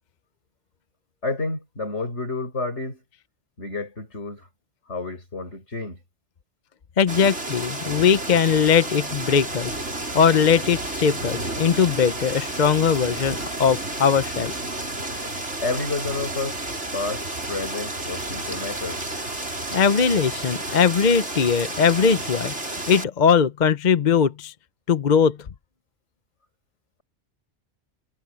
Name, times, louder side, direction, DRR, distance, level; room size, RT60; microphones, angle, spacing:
voice 1, 1.2-3.0 3.6-4.5 4.9-6.0 15.6-16.6 16.9-19.0, left 3 dB, 75° left, 6.0 m, -30 dB
voice 2, 7.0-9.7 10.1-14.5 19.7-22.5 22.9-24.5 24.9-25.4, left 6 dB, 45° left, 0.8 m, -20 dB
sound 1, 7.1-23.0, right 2 dB, 80° right, 5.3 m, -31 dB
omnidirectional pair, 1.2 m